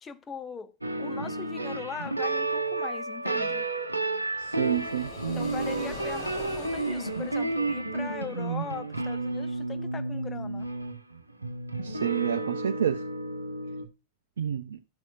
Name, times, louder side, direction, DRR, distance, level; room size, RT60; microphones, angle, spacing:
voice 1, 0.0-0.7 1.0-3.6 5.3-10.7, left 6 dB, 20° left, 0.8 m, -40 dB
sound 1, 0.8-13.9, right 2 dB, 85° right, 0.8 m, -31 dB
sound 2, 4.3-8.4, left 2 dB, 40° left, 3.9 m, -42 dB
voice 2, 4.4-5.1 11.8-13.0 14.4-14.8, right 9 dB, 65° right, 0.4 m, -29 dB
12.0 x 6.2 x 2.4 m
figure-of-eight pair, 90°, 0 cm